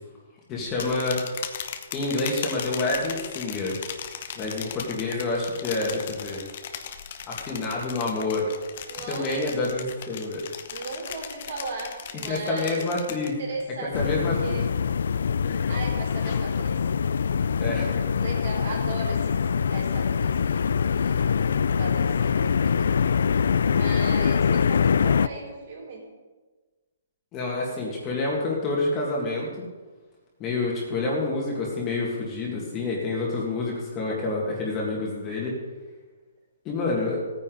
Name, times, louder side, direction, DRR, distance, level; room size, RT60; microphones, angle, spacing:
voice 1, 0.5-1.2 1.9-3.8 4.4-6.4 7.3-8.5 9.1-10.4 12.3-13.4 13.9-14.6 17.6-18.0 27.3-29.7 30.4-35.5 36.7-37.2, left 2 dB, 15° left, -3 dB, 2.0 m, -28 dB
sound 1, 0.7-13.6 14.0-14.4 14.8-16.7, left 8 dB, 40° left, 0.9 m, -38 dB
voice 2, 8.9-9.3 10.7-12.8 13.2-14.7 15.7-16.8 18.2-23.0 23.6-26.0, right 3 dB, 55° right, -1 dB, 4.6 m, -37 dB
sound 2, 13.9-25.3, left 6 dB, 70° left, 0.3 m, -24 dB
16.5 x 9.5 x 4.0 m, 1.3 s
hypercardioid pair, 170°, 0 cm